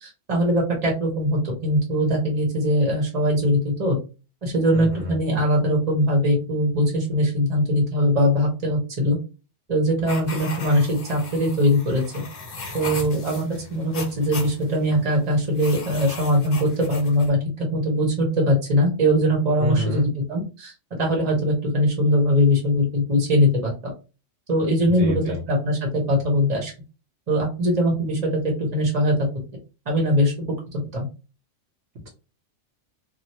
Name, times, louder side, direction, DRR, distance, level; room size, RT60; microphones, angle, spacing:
voice 1, 0.0-4.0 4.4-9.2 9.7-12.2 12.7-20.7 21.0-23.7 24.5-26.7 27.3-28.4 28.7-29.1 29.9-30.3 30.9-31.1, equal, 35° right, 0 dB, 1.1 m, -21 dB
voice 2, 4.7-5.2 19.6-20.1 24.9-25.4, left 1 dB, 85° right, -4 dB, 1.4 m, -28 dB
sound 1, 10.1-17.3, left 3 dB, 65° left, 1.2 m, -38 dB
3.3 x 2.3 x 2.8 m, 0.31 s
omnidirectional pair, 1.3 m